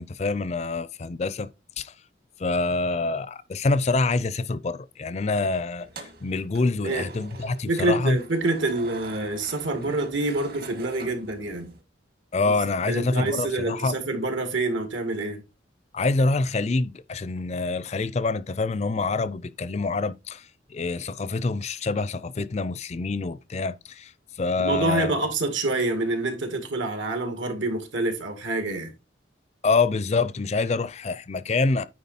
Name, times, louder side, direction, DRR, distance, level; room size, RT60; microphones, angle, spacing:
voice 1, 0.0-1.5 1.8-1.9 2.4-8.2 12.3-13.9 15.9-24.1 24.4-25.2 29.6-31.8, left 3 dB, 35° left, 0.4 m, -26 dB
sound 1, 5.8-11.8, right 3 dB, 55° right, 1.4 m, -45 dB
voice 2, 7.7-11.7 12.4-12.6 12.9-15.4 24.6-28.9, right 2 dB, 80° right, 2.2 m, -27 dB
9.6 x 3.9 x 4.2 m
head